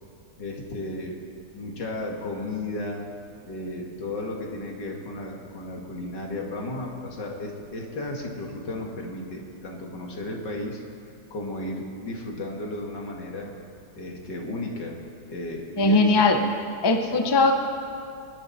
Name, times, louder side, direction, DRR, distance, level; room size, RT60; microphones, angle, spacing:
voice 1, 0.4-1.2 1.5-3.1 3.4-10.8 11.3-13.5 14.0-15.0 15.3-16.3 17.0-17.2, left 1 dB, 75° left, 0 dB, 2.7 m, -34 dB
voice 2, 15.8-16.4 16.8-17.6, left 3 dB, 20° left, 4 dB, 0.7 m, -19 dB
27.5 x 11.5 x 4.2 m, 2.4 s
omnidirectional pair, 1.9 m